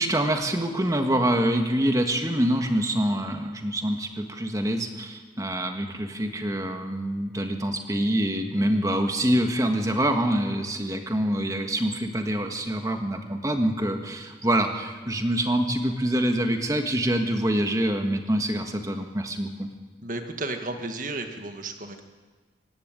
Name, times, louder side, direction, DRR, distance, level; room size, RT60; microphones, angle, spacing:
voice 1, 0.0-19.7, right 1 dB, 20° right, 4 dB, 1.6 m, -25 dB
voice 2, 20.0-22.0, right 2 dB, 45° right, 5 dB, 1.8 m, -33 dB
25.0 x 11.5 x 9.1 m, 1.4 s
head